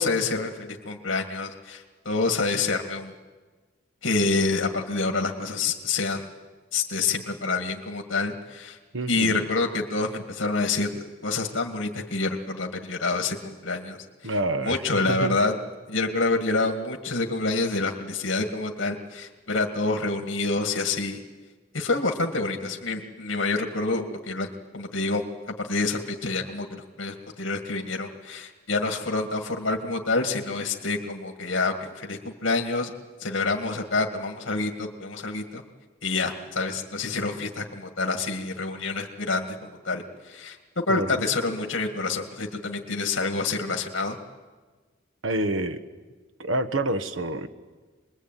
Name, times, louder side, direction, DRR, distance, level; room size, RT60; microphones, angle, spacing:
voice 1, 0.0-3.1 4.0-6.3 6.7-8.8 9.1-10.9 11.2-14.3 14.6-15.5 15.9-21.2 21.7-24.5 24.7-25.2 25.6-32.9 33.2-35.6 36.0-44.2, left 3 dB, 80° left, 3 dB, 2.0 m, -27 dB
voice 2, 8.9-9.4 14.2-15.4 40.9-41.2 45.2-45.8 46.4-47.5, right 2 dB, 90° right, 9 dB, 1.3 m, -28 dB
26.5 x 21.5 x 9.1 m, 1.3 s
head